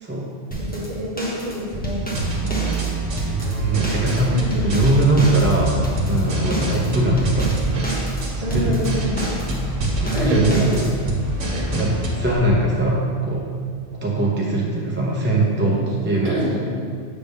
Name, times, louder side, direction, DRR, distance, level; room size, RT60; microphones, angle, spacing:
sound 1, 0.5-11.2, right 1 dB, 10° left, 0.8 m, -29 dB
voice 1, 0.7-2.7 4.3-4.6 8.4-9.6 10.1-11.0 11.5-11.8 15.3-15.8 16.2-16.5, equal, 30° right, -6 dB, 1.5 m, -27 dB
sound 2, 2.1-12.4, right 2 dB, 85° right, 1.3 m, -26 dB
voice 2, 3.2-4.4 4.6-5.8 6.1-7.5 8.5-8.8 10.0-10.8 11.7-13.4 14.0-16.6, right 2 dB, 15° right, -4 dB, 0.4 m, -21 dB
7.3 x 3.4 x 5.3 m, 2.1 s
omnidirectional pair, 1.2 m